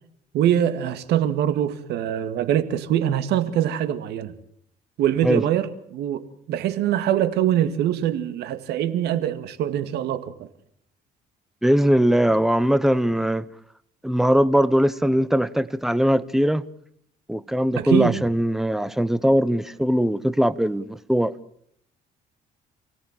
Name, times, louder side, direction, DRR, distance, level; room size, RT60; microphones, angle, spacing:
voice 1, 0.3-4.3 5.0-10.5 17.8-18.2, right 11 dB, 80° right, 2.1 m, -23 dB
voice 2, 11.6-13.5 14.0-16.6 17.3-21.3, equal, ahead, 1.1 m, -20 dB
28.5 x 17.5 x 7.5 m
cardioid pair, 110°, 17 cm